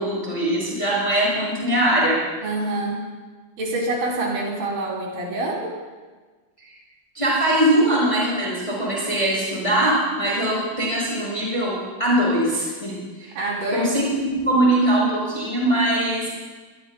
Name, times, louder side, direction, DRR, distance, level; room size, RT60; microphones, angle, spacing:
voice 1, 0.0-2.2 6.6-6.7 7.1-13.3 13.7-16.3, right 1 dB, 5° left, -6 dB, 5.7 m, -21 dB
voice 2, 2.4-3.1 3.6-5.7 13.3-13.9, right 2 dB, 70° right, -3 dB, 5.0 m, -26 dB
22.0 x 22.0 x 2.3 m, 1.3 s
omnidirectional pair, 4.5 m